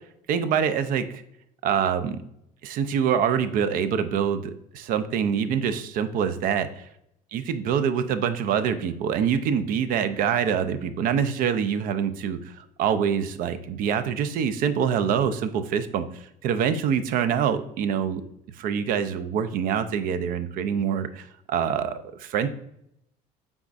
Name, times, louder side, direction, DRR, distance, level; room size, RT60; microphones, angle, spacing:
voice 1, 0.3-1.2 1.6-2.2 2.6-6.9 7.3-18.2 18.6-22.5, right 7 dB, 55° right, 12 dB, 0.4 m, -25 dB
5.0 x 3.5 x 2.4 m, 0.77 s
cardioid pair, 120°, 17 cm